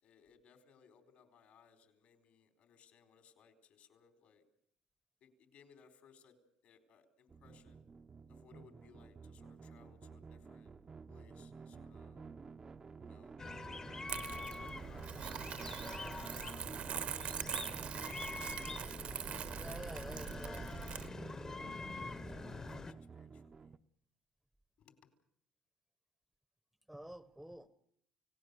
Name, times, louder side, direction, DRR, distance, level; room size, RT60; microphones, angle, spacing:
voice 1, 0.0-4.4 5.2-6.4 6.6-7.8 8.3-10.8 11.1-12.2 13.0-13.4 13.9-15.9 16.4-16.6 17.6-18.9 19.6-20.7 21.9-23.7 24.8-24.9, left 6 dB, 65° left, 6 dB, 4.3 m, -65 dB
sound 1, 7.3-23.8, right 5 dB, 30° right, 0.9 m, -51 dB
sound 2, 13.4-22.9, left 3 dB, 25° left, 1.2 m, -46 dB
Crumpling crinkling, 14.1-21.1, right 9 dB, 60° right, 1.4 m, -43 dB
voice 2, 19.6-20.6 26.9-27.7, right 1 dB, 5° right, 13 dB, 1.0 m, -49 dB
29.5 x 18.0 x 6.9 m, 0.68 s
cardioid pair, 110°, 2 cm